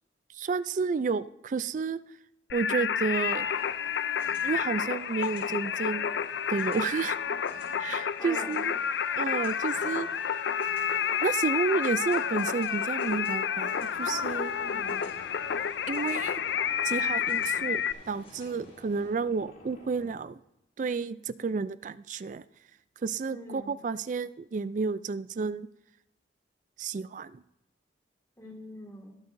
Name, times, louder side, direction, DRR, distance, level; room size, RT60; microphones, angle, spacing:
voice 1, 0.3-2.0 2.5-3.5 4.4-6.1 6.5-7.2 7.8-8.7 9.2-10.1 11.2-14.5 15.9-16.4 16.8-20.4 20.8-22.4 23.0-25.7 26.8-27.4, right 4 dB, 45° right, 16 dB, 0.3 m, -31 dB
Singing, 2.5-17.9, left 8 dB, 70° left, 0.4 m, -30 dB
sound 1, 3.1-19.1, left 2 dB, 35° left, 4.1 m, -55 dB
voice 2, 8.2-8.6 14.6-15.0 23.2-23.8 28.4-29.2, left 1 dB, 15° left, 0 dB, 2.0 m, -44 dB
sound 2, 13.9-20.1, left 1 dB, 50° left, 3.1 m, -52 dB
20.5 x 8.1 x 2.6 m, 0.85 s
head